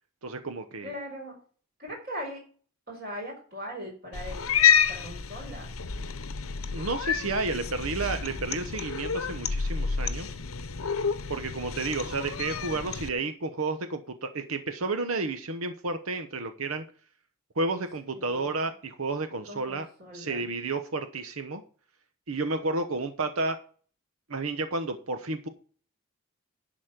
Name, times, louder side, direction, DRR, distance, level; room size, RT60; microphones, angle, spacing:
voice 1, 0.2-0.9 6.7-10.3 11.3-16.8 17.6-19.9 20.1-21.6 22.3-23.6 24.3-25.5, right 3 dB, 85° right, 8 dB, 1.0 m, -31 dB
voice 2, 0.8-1.4 1.8-2.4 2.9-4.5 4.9-5.7 18.1-18.7 19.5-20.5, equal, 45° right, -1 dB, 4.2 m, -40 dB
Cat, 4.1-13.1, left 7 dB, 85° left, 0.9 m, -29 dB
11.5 x 4.2 x 7.6 m, 0.42 s
head